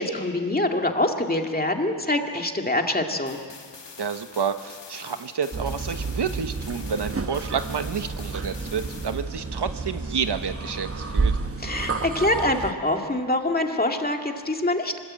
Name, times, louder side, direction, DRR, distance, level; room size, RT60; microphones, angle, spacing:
voice 1, 0.0-3.4 11.6-15.0, left 1 dB, 20° left, 3 dB, 2.2 m, -25 dB
sound 1, 3.3-9.2, left 5 dB, 70° left, 2.3 m, -45 dB
voice 2, 4.0-11.4, right 6 dB, 65° right, 9 dB, 1.2 m, -29 dB
sound 2, 5.5-12.7, right 4 dB, 30° right, 1.1 m, -30 dB
26.0 x 21.5 x 8.7 m, 2.1 s
wide cardioid pair, 90°, 44 cm